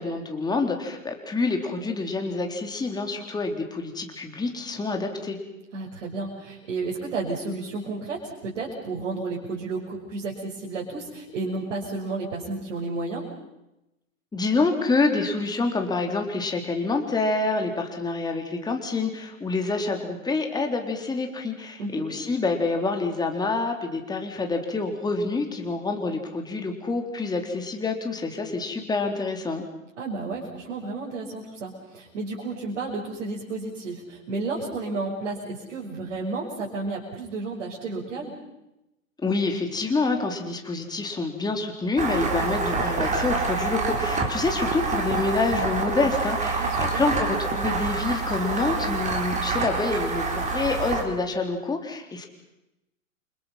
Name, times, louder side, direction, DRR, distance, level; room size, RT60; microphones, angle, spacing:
voice 1, 0.0-5.4 14.3-29.6 39.2-52.3, left 3 dB, 10° left, 3 dB, 3.7 m, -27 dB
voice 2, 5.7-13.3 21.8-22.0 30.0-38.3 46.6-47.0, right 3 dB, 60° right, -3 dB, 6.3 m, -32 dB
sound 1, 42.0-51.0, right 4 dB, 15° right, 4.3 m, -27 dB
30.0 x 25.5 x 5.8 m, 0.92 s
figure-of-eight pair, 105°, 41 cm